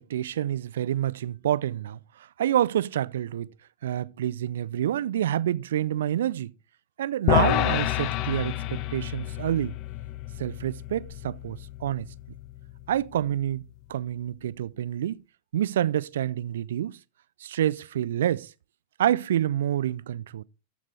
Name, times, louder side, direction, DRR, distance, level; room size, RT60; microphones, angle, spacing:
voice 1, 0.0-2.0 2.4-3.5 3.8-6.5 7.0-9.7 10.4-12.1 12.9-13.6 13.9-15.2 15.5-17.0 17.4-18.5 19.0-20.4, right 11 dB, 60° right, 0.3 m, -27 dB
sound 1, 7.3-13.7, left 14 dB, 40° left, 0.5 m, -30 dB
13.5 x 6.0 x 3.3 m
figure-of-eight pair, 90°, 0 cm